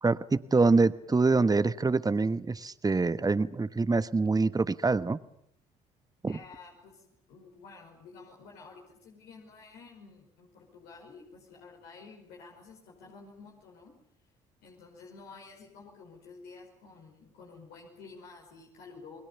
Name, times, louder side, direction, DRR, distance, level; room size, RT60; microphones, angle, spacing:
voice 1, 0.0-5.2 6.2-6.4, right 3 dB, 20° right, 14 dB, 1.2 m, -25 dB
voice 2, 6.3-13.9 14.6-19.2, left 4 dB, 75° left, -2 dB, 5.5 m, -51 dB
29.0 x 21.5 x 7.1 m, 0.74 s
hypercardioid pair, 55°, 17 cm